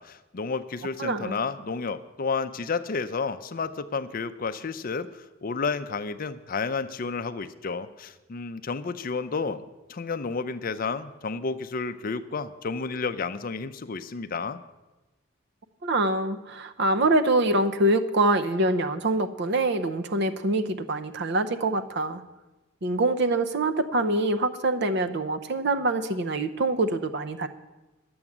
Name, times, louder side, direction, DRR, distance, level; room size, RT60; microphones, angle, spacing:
voice 1, 0.0-9.6 9.9-14.6, left 4 dB, 40° left, 11 dB, 0.5 m, -31 dB
voice 2, 1.0-1.4 15.8-22.2 22.8-27.5, right 2 dB, 55° right, 9 dB, 0.7 m, -25 dB
11.0 x 7.9 x 7.2 m, 1.1 s
head